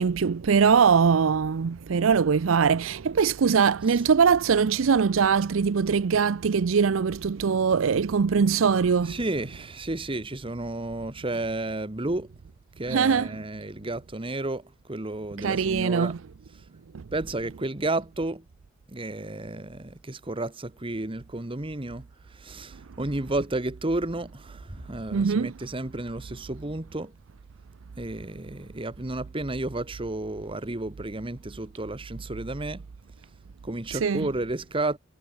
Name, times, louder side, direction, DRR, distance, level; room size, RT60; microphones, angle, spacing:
voice 1, 0.0-9.2 12.9-13.3 15.4-16.2 16.9-17.0 25.1-25.5 34.0-34.2, right 6 dB, 90° right, 0.5 m, -22 dB
voice 2, 9.0-12.3 12.8-16.1 17.1-18.4 18.9-27.1 28.0-32.9 33.6-35.0, right 2 dB, 25° right, 1.4 m, -32 dB
head